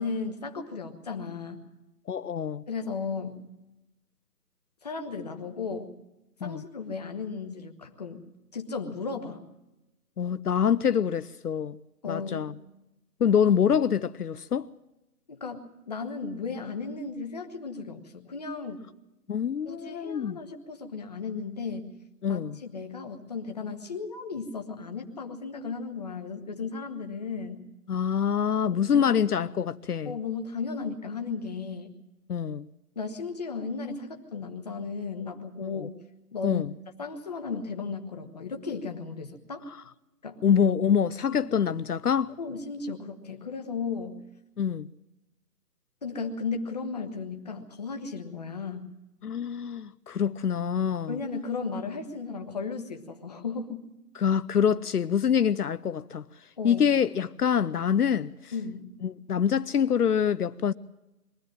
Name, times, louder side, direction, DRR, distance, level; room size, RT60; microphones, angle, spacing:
voice 1, 0.0-1.7 2.7-3.4 4.8-5.9 6.4-8.2 8.5-9.5 12.0-12.5 15.3-18.9 19.6-21.9 22.3-27.7 28.6-29.3 30.0-32.0 32.9-36.0 36.3-36.6 37.0-39.7 40.2-40.4 41.3-41.4 42.4-44.2 46.0-48.9 51.1-53.9 56.6-56.9 58.5-58.9, left 4 dB, 25° left, 1.3 m, -35 dB
voice 2, 2.1-2.6 6.4-6.6 10.2-11.8 12.1-12.5 13.2-14.7 19.3-20.4 22.2-22.6 27.9-30.2 32.3-32.7 35.6-35.9 36.4-36.7 40.4-42.3 44.6-44.9 49.2-51.2 54.1-56.2 56.6-58.5 59.0-60.7, left 8 dB, 75° left, 0.7 m, -25 dB
22.5 x 15.0 x 7.6 m
figure-of-eight pair, 165°, 47 cm